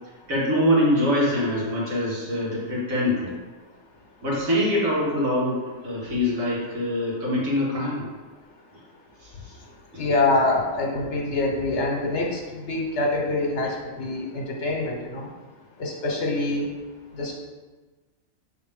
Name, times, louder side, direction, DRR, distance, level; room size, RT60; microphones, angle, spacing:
voice 1, 0.3-3.3 4.2-8.1 9.2-9.6 9.9-10.0, left 1 dB, 90° right, -6 dB, 2.2 m, -24 dB
voice 2, 10.0-15.3 15.8-16.7 17.2-17.3, left 2 dB, 60° left, 0 dB, 1.2 m, -25 dB
6.9 x 3.9 x 3.6 m, 1.3 s
omnidirectional pair, 1.4 m